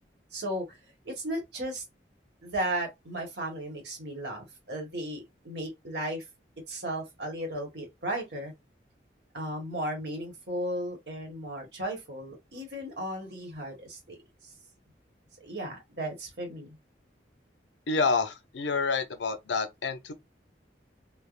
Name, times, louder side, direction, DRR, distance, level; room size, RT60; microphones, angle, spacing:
voice 1, 0.3-0.8 1.0-1.8 2.4-6.2 6.7-8.5 9.3-14.2 15.4-16.7, right 1 dB, 75° right, 1.2 m, -35 dB
voice 2, 17.9-20.1, left 4 dB, 85° left, 0.6 m, -28 dB
3.3 x 2.1 x 2.4 m
head